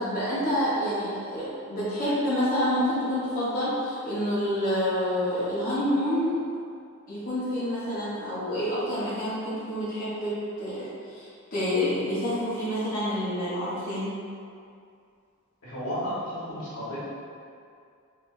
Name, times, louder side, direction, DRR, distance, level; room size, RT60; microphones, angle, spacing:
voice 1, 0.0-6.4 7.1-14.1, equal, 40° left, -12 dB, 1.0 m, -28 dB
voice 2, 15.6-17.0, equal, 90° left, -10 dB, 1.4 m, -33 dB
3.4 x 3.3 x 2.6 m, 2.4 s
head